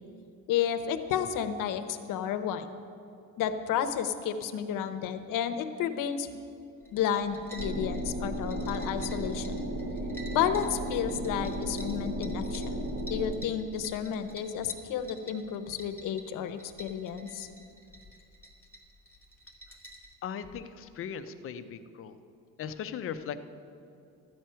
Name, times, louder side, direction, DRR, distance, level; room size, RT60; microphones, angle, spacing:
voice 1, 0.5-2.8 3.4-6.3 6.9-9.5 10.3-12.8 13.1-17.5, left 9 dB, 60° left, 8 dB, 0.8 m, -31 dB
sound 1, 6.8-20.1, equal, 5° left, 1.1 m, -50 dB
sound 2, 7.6-13.3, right 1 dB, 40° right, 0.9 m, -34 dB
voice 2, 20.2-22.2 22.6-23.4, left 8 dB, 35° left, 10 dB, 0.4 m, -38 dB
13.0 x 9.0 x 5.6 m, 2.6 s
cardioid pair, 180°, 37 cm